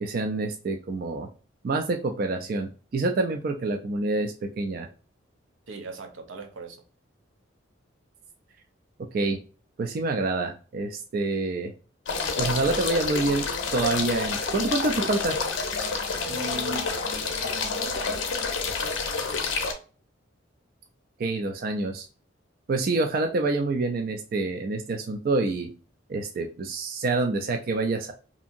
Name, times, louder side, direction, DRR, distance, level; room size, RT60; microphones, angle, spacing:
voice 1, 0.0-1.3 1.6-4.9 9.1-9.4 9.8-11.7 12.4-13.5 13.7-15.4 21.2-22.1 22.7-25.7 26.1-28.1, right 3 dB, 50° right, 0.3 m, -27 dB
voice 2, 5.7-6.8 16.3-18.3, right 3 dB, 85° right, 0.6 m, -39 dB
sound 1, 12.1-19.7, left 4 dB, 80° left, 0.6 m, -29 dB
2.7 x 2.6 x 2.4 m
head